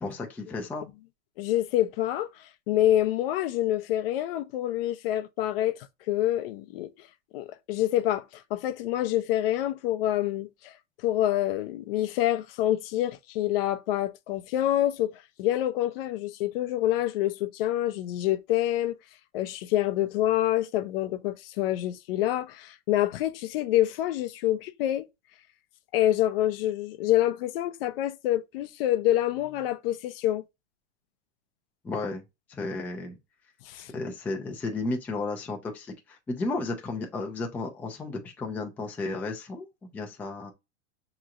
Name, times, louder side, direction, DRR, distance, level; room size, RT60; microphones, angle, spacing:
voice 1, 0.0-0.8 31.8-32.2 32.5-33.2 33.9-39.7 39.9-40.5, left 3 dB, 5° left, 0.3 m, -33 dB
voice 2, 1.4-5.8 6.1-6.9 7.3-10.7 11.0-15.1 15.4-19.0 19.3-25.1 25.9-30.4 33.7-33.9, left 13 dB, 55° left, 0.5 m, -27 dB
6.0 x 2.9 x 2.4 m
supercardioid pair, 145°, 34 cm